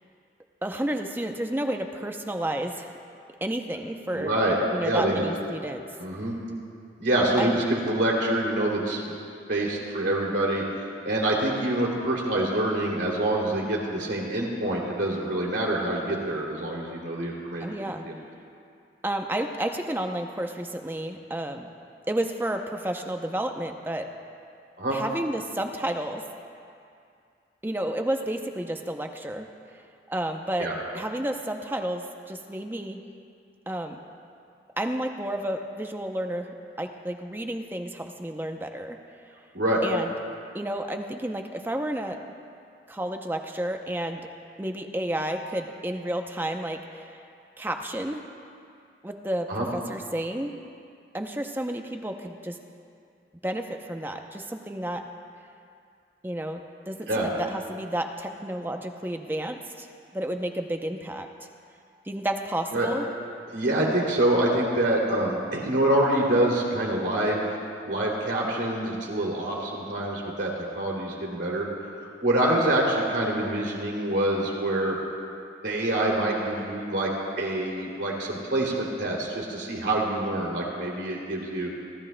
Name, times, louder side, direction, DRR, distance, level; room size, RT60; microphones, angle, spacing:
voice 1, 0.6-2.9 3.4-4.3 4.7-5.9 7.4-7.6 17.6-18.1 19.0-21.7 22.1-24.1 24.9-26.2 27.6-29.5 30.1-33.0 33.7-34.0 34.8-39.0 39.8-40.1 40.5-42.2 42.9-44.2 44.6-47.2 47.6-48.2 49.0-50.5 51.1-52.6 53.4-55.0 56.2-59.9 60.1-61.3 62.1-63.1, right 1 dB, 10° right, 5 dB, 0.6 m, -31 dB
voice 2, 4.1-5.2 6.0-6.4 7.0-9.1 9.5-10.6 11.0-17.7 18.0-18.1 24.8-25.0 30.6-30.7 39.5-39.8 49.5-49.7 57.1-57.3 62.7-62.9 63.5-67.4 67.9-71.7 72.2-75.0 75.6-77.1 77.4-81.7, right 1 dB, 85° right, -2 dB, 2.7 m, -26 dB
29.0 x 13.5 x 2.2 m, 2.4 s
head